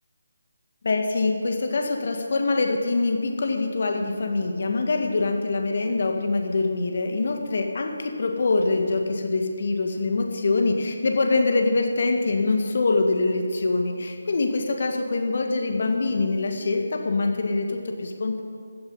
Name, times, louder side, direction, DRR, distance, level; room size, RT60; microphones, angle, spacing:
voice 1, 0.8-18.4, left 3 dB, 50° left, 4 dB, 1.9 m, -24 dB
15.5 x 12.5 x 5.5 m, 2.1 s
figure-of-eight pair, 155°, 0 cm